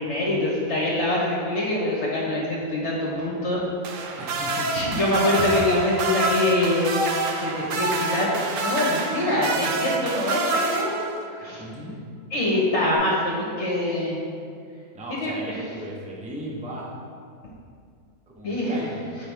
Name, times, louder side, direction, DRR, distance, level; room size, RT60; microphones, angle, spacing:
voice 1, 0.0-3.6 4.1-4.2 4.7-7.0 7.4-8.3 8.6-10.9 11.3-11.6 12.3-14.2 15.1-15.6 18.4-18.8, left 1 dB, 55° left, -5 dB, 1.4 m, -24 dB
sound 1, 3.8-11.4 12.8-13.0, right 3 dB, 65° right, 1.0 m, -27 dB
voice 2, 4.2-4.7 11.6-12.0 14.9-16.9 18.4-19.0, right 1 dB, 5° right, -4 dB, 0.6 m, -36 dB
7.9 x 5.3 x 3.4 m, 2.4 s
omnidirectional pair, 1.6 m